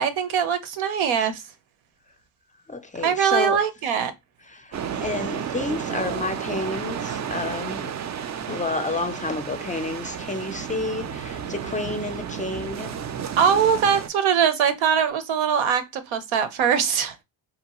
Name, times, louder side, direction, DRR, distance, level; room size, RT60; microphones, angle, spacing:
voice 1, 0.0-1.4 3.0-4.1 13.4-17.2, right 7 dB, 75° right, 0.8 m, -22 dB
voice 2, 2.7-3.6 4.5-8.0 8.5-13.0, left 3 dB, 15° left, 0.5 m, -30 dB
sound 1, 4.7-14.1, right 8 dB, 40° right, 0.4 m, -32 dB
2.8 x 2.2 x 2.9 m
supercardioid pair, 70°, 48 cm